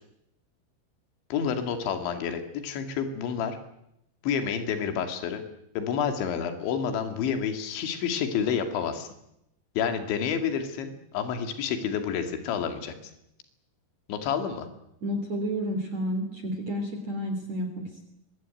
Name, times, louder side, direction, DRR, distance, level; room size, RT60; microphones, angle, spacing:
voice 1, 1.3-3.6 4.2-5.4 5.8-9.1 9.8-12.9 14.1-14.7, left 7 dB, 75° left, 7 dB, 4.7 m, -29 dB
voice 2, 15.0-18.0, equal, 40° right, 5 dB, 3.8 m, -31 dB
24.0 x 23.0 x 9.2 m, 0.80 s
omnidirectional pair, 5.4 m